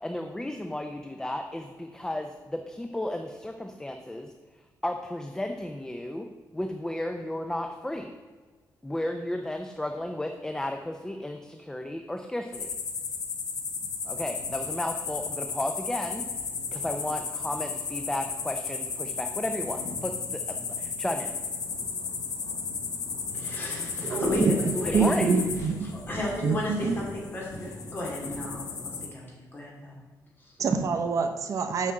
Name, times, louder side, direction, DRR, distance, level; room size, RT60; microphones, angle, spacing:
voice 1, 0.0-4.3 4.8-6.3 6.5-8.1 8.8-12.7 14.0-16.2 16.7-21.3 24.9-25.4, left 1 dB, 10° left, 5 dB, 0.5 m, -33 dB
sound 1, 12.5-29.1, left 5 dB, 65° left, 1.2 m, -34 dB
voice 2, 23.3-25.1 26.1-30.0 30.4-30.5, left 2 dB, 30° left, -3 dB, 2.8 m, -33 dB
voice 3, 24.0-27.0 30.6-31.9, right 5 dB, 50° right, 7 dB, 0.7 m, -26 dB
sound 2, 24.2-27.1 27.4-28.5, left 1 dB, 45° left, 2.6 m, -41 dB
7.4 x 5.9 x 6.4 m, 1.4 s
wide cardioid pair, 155°, 7 cm